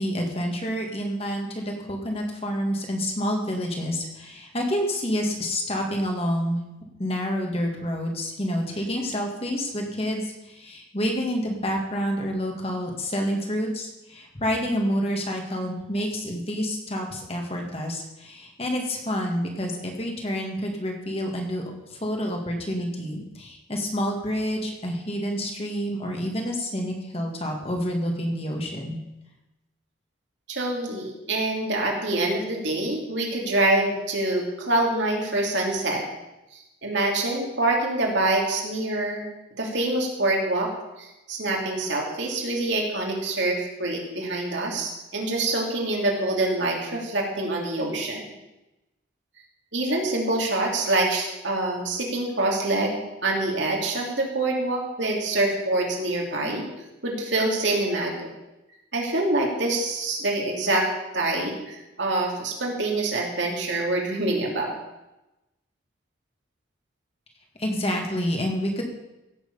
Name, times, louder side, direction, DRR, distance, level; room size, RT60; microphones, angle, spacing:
voice 1, 0.0-6.6 7.0-21.6 21.9-29.0 67.6-68.8, equal, 30° left, 2 dB, 2.0 m, -28 dB
voice 2, 30.5-36.0 36.5-39.2 39.6-40.7 41.0-48.3 49.7-56.6 57.0-58.3 58.9-60.8 61.1-64.7, right 2 dB, 65° right, -1 dB, 3.0 m, -25 dB
16.5 x 7.9 x 5.6 m, 0.98 s
head